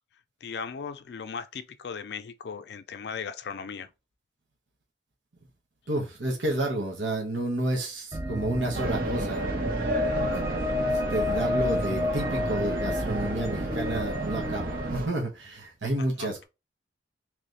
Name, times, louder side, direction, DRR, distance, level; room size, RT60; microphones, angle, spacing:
voice 1, 0.4-3.9 16.2-16.4, left 6 dB, 60° left, 0.4 m, -37 dB
voice 2, 5.9-9.4 10.2-10.4 10.9-16.4, right 1 dB, 80° right, 1.2 m, -30 dB
sound 1, 8.1-15.0, left 2 dB, 15° right, 0.5 m, -30 dB
sound 2, 8.7-15.1, right 2 dB, 50° right, 0.7 m, -32 dB
3.3 x 3.1 x 3.9 m
head